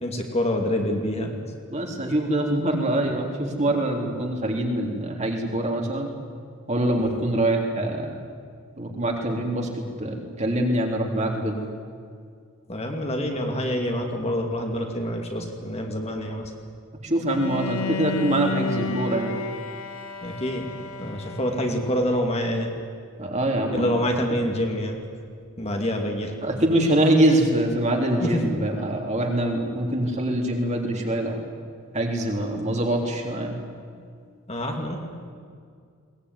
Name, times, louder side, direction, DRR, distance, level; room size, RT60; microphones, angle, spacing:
voice 1, 0.0-1.3 7.0-7.2 12.7-16.5 20.2-20.7 21.0-22.7 23.7-25.0 25.6-26.3 28.2-28.4 34.5-35.0, equal, 30° left, 2 dB, 2.6 m, -26 dB
voice 2, 1.7-6.1 6.7-8.2 8.8-11.6 17.0-19.3 23.2-23.9 24.3-24.4 26.4-31.4 31.9-33.6, right 1 dB, 30° right, 1 dB, 3.5 m, -24 dB
Bowed string instrument, 17.3-22.3, left 5 dB, 75° left, 1.6 m, -32 dB
22.0 x 19.5 x 9.7 m, 2.2 s
head